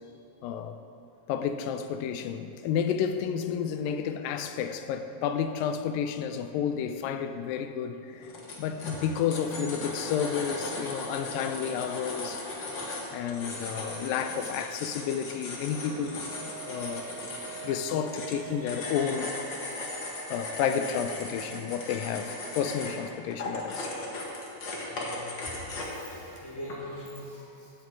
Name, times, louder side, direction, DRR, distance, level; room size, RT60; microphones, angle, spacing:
voice 1, 0.4-0.8 1.3-8.3 8.6-12.5 13.1-16.2 16.6-17.0 17.6-19.3 20.3-23.9, left 8 dB, 85° left, 2.3 m, -31 dB
sound 1, 8.1-26.1 26.7-27.1, left 2 dB, 45° left, 1.7 m, -37 dB
sound 2, 15.9-21.4 21.7-21.8, right 12 dB, 70° right, 1.7 m, -46 dB
voice 2, 19.7-20.5 24.9-27.7, left 1 dB, 10° left, 1.7 m, -44 dB
16.5 x 8.5 x 4.7 m
omnidirectional pair, 4.0 m